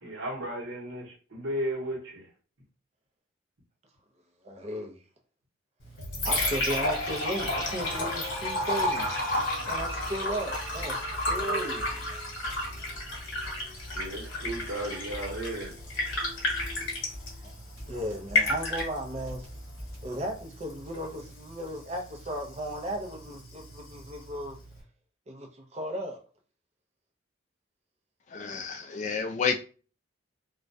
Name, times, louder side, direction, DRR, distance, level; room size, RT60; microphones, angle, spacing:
voice 1, 0.0-2.3 13.9-15.7, right 1 dB, 75° right, 0.9 m, -35 dB
voice 2, 4.4-5.0 6.2-9.1 9.7-12.0 17.9-19.5 20.0-24.6 25.3-26.2, equal, 30° right, 0.5 m, -35 dB
Liquid, 5.8-24.8, left 1 dB, 65° left, 1.0 m, -33 dB
sound 1, 9.8-20.4, equal, 10° right, 1.1 m, -44 dB
voice 3, 28.3-29.6, left 5 dB, 35° left, 0.3 m, -30 dB
2.3 x 2.1 x 2.6 m
head